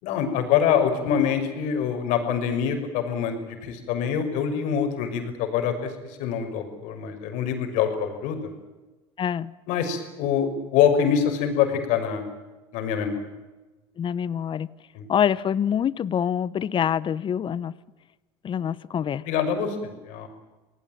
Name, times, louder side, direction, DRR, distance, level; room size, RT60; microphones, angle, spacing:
voice 1, 0.0-5.9 6.2-8.4 9.7-12.2 12.7-13.1 14.9-15.1 19.3-20.3, left 8 dB, 70° left, 6 dB, 6.0 m, -25 dB
voice 2, 9.2-9.5 14.0-14.7 15.1-17.7 18.4-19.2, left 8 dB, 40° left, 19 dB, 1.0 m, -25 dB
27.0 x 19.0 x 9.0 m, 1.1 s
hypercardioid pair, 80°, 13 cm